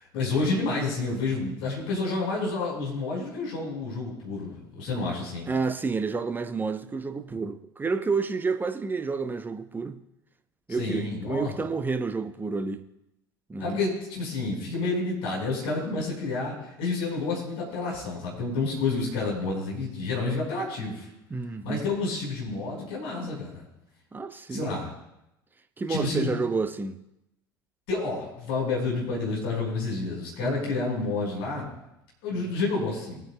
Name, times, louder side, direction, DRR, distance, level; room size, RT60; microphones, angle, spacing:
voice 1, 0.1-5.5 10.7-11.5 13.6-21.1 21.6-23.6 24.5-24.9 25.9-26.3 27.9-31.7 32.2-33.2, left 3 dB, 55° left, 4.7 m, -29 dB
voice 2, 5.5-10.0 10.7-12.9 13.5-13.8 21.3-21.9 24.1-24.8 25.8-27.0 30.4-30.6 32.3-32.5, right 4 dB, 15° right, 0.8 m, -30 dB
21.5 x 9.1 x 2.3 m
figure-of-eight pair, 70°, 12 cm